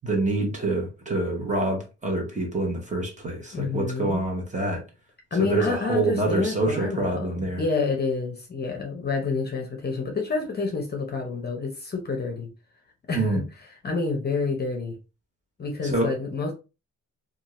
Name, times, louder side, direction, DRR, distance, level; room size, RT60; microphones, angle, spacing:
voice 1, 0.0-4.8 5.4-7.6 13.1-13.4 15.8-16.1, right 2 dB, 25° right, 1.0 m, -26 dB
voice 2, 3.5-4.2 5.3-12.5 13.1-13.4 13.8-15.0 15.6-16.5, left 4 dB, 30° left, 0.7 m, -28 dB
2.6 x 2.4 x 3.0 m
cardioid pair, 130°, 31 cm